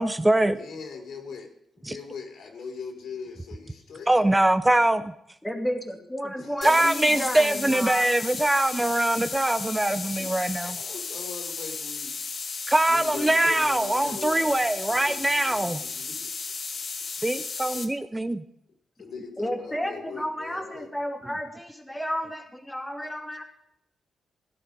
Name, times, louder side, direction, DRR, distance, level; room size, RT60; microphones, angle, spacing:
voice 1, 0.0-0.6 1.9-2.0 4.1-5.1 6.6-10.8 12.7-15.8 17.2-18.4, right 1 dB, 15° right, 11 dB, 0.7 m, -23 dB
voice 2, 0.6-1.5 1.8-4.2 6.4-7.4 10.2-12.2 12.9-16.3 19.0-20.9, left 5 dB, 80° left, 3 dB, 3.6 m, -41 dB
voice 3, 5.4-8.1 19.4-23.4, equal, 10° left, 4 dB, 2.5 m, -32 dB
sound 1, 6.6-17.8, left 5 dB, 55° left, 2.0 m, -34 dB
16.5 x 11.0 x 5.3 m, 0.77 s
cardioid pair, 100°, 0 cm